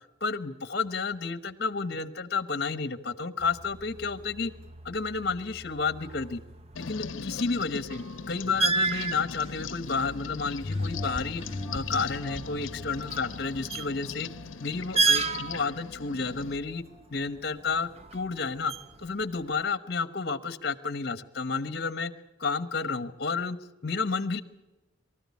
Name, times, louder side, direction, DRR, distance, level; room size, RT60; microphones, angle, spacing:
voice 1, 0.2-4.5 4.8-6.4 6.8-11.4 11.7-14.3 14.6-16.8 17.1-18.7 19.0-22.1 22.4-23.6 23.8-24.4, left 4 dB, 55° left, 14 dB, 1.1 m, -31 dB
sound 1, 3.4-19.6, right 4 dB, 30° right, 0.6 m, -35 dB
sound 2, 6.7-16.6, left 6 dB, 75° left, 0.7 m, -40 dB
sound 3, 10.6-15.5 16.0-16.1, left 2 dB, 10° right, 2.9 m, -38 dB
24.0 x 14.0 x 8.4 m, 1.1 s
head